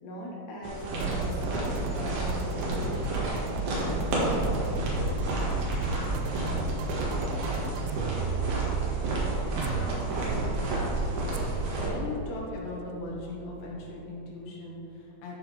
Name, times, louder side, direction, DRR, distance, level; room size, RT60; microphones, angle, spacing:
voice 1, 0.0-4.7, right 1 dB, 60° left, -3 dB, 2.0 m, -41 dB
hiking Forest, 0.6-11.9, right 2 dB, 70° right, 3.2 m, -31 dB
sound 1, 1.0-14.4, right 4 dB, 85° right, 2.6 m, -35 dB
voice 2, 8.9-10.4 11.8-15.4, left 2 dB, 85° left, -4 dB, 3.6 m, -40 dB
12.0 x 4.0 x 4.8 m, 2.9 s
omnidirectional pair, 4.7 m